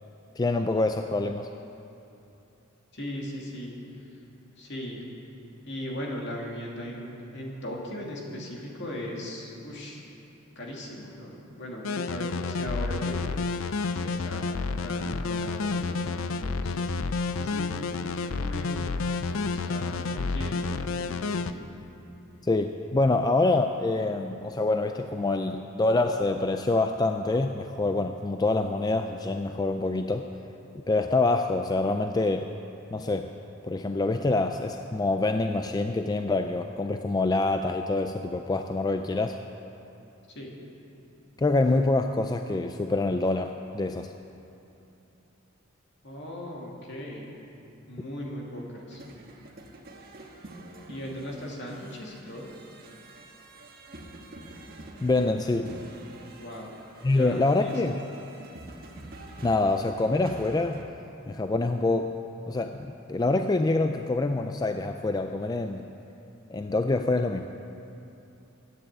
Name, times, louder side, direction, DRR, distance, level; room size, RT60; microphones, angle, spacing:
voice 1, 0.4-1.5 22.4-30.3 30.7-32.5 32.9-33.3 33.6-39.4 41.4-44.1 55.0-55.7 57.0-58.0 59.4-60.8 61.3-62.1 62.5-65.9 66.5-67.5, left 2 dB, 20° left, 6 dB, 0.3 m, -26 dB
voice 2, 2.9-3.7 4.0-4.2 4.6-5.0 5.6-10.1 10.6-13.4 13.9-16.9 17.4-21.7 40.3-40.6 46.0-47.3 47.9-49.0 50.9-52.5 56.4-56.7 57.1-57.7, equal, 55° left, -2 dB, 2.4 m, -38 dB
sound 1, 11.8-21.5, left 4 dB, 75° left, 0.5 m, -30 dB
sound 2, 48.9-60.8, right 1 dB, 45° right, 1.3 m, -46 dB
12.0 x 9.5 x 8.1 m, 2.8 s
head